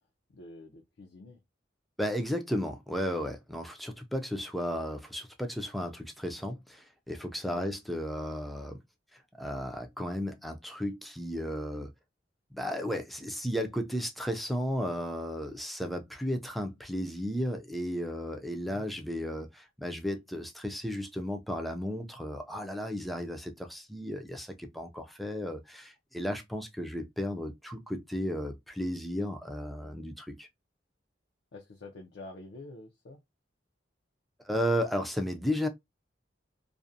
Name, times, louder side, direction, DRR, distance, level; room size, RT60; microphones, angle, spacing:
voice 1, 0.3-1.4 7.5-7.7 31.5-33.2, left 2 dB, 65° left, 0.5 m, -47 dB
voice 2, 2.0-8.8 9.4-11.9 12.5-30.5 34.4-35.7, equal, ahead, 0.4 m, -34 dB
2.5 x 2.0 x 2.6 m
head